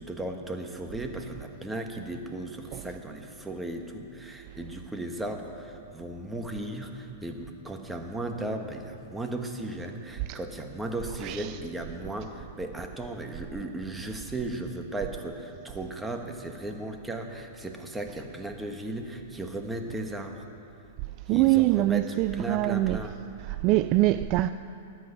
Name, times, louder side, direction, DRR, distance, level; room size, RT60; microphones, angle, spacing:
voice 1, 0.0-20.4 21.3-23.2, right 1 dB, 5° right, 1.3 m, -36 dB
voice 2, 21.3-23.0 23.5-24.5, right 17 dB, 40° right, 0.3 m, -23 dB
14.0 x 9.2 x 9.9 m
hypercardioid pair, 145°, 0 cm